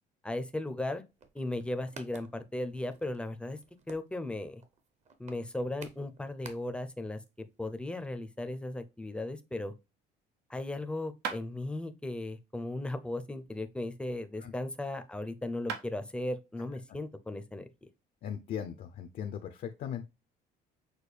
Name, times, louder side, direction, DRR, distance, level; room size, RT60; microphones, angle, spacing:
voice 1, 0.2-1.0 1.3-3.6 3.9-4.6 5.2-9.7 10.5-17.7, left 1 dB, 5° left, 0.5 m, -36 dB
sound 1, 1.1-7.0 7.2-7.3 7.5-7.7, right 5 dB, 40° right, 0.8 m, -53 dB
sound 2, 11.2-11.5 13.4-14.7 15.3-15.4 15.7-15.9, right 6 dB, 85° right, 0.8 m, -41 dB
voice 2, 18.2-20.0, left 8 dB, 55° left, 0.5 m, -38 dB
6.3 x 2.2 x 3.3 m
cardioid pair, 110°, 17 cm